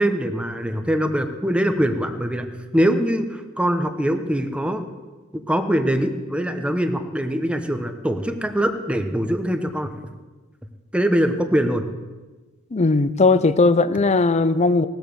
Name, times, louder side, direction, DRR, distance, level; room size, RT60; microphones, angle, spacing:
voice 1, 0.0-4.8 5.3-9.9 10.9-11.8, equal, 5° right, 7 dB, 1.0 m, -23 dB
voice 2, 12.7-14.9, left 3 dB, 30° left, 15 dB, 0.6 m, -18 dB
18.5 x 8.0 x 6.9 m, 1.3 s
head